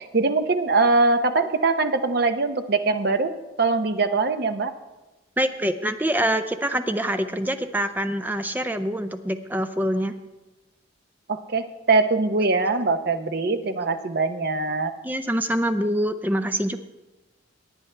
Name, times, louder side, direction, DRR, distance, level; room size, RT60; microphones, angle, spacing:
voice 1, 0.0-4.7 11.3-14.9, right 3 dB, 50° right, 9 dB, 0.7 m, -22 dB
voice 2, 5.4-10.1 15.0-16.8, equal, 10° right, 9 dB, 0.5 m, -25 dB
18.0 x 9.3 x 3.3 m, 1.1 s
head